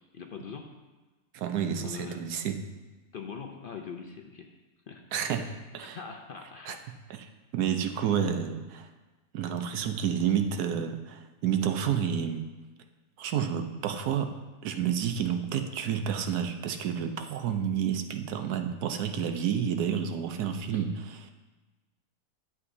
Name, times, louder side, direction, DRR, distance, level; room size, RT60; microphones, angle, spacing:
voice 1, 0.1-0.7 1.8-2.2 3.1-4.5 4.9-5.0 5.4-5.5 5.9-6.8 7.9-8.4 10.3-10.4 18.0-18.1 20.3-20.9, left 6 dB, 65° left, 3 dB, 0.5 m, -43 dB
voice 2, 1.3-2.6 5.1-5.5 5.7-6.0 6.7-6.8 7.5-8.9 9.3-12.4 13.2-14.3 14.6-21.3, right 8 dB, 90° right, 7 dB, 1.3 m, -30 dB
11.0 x 7.9 x 2.7 m, 1.2 s
omnidirectional pair, 1.6 m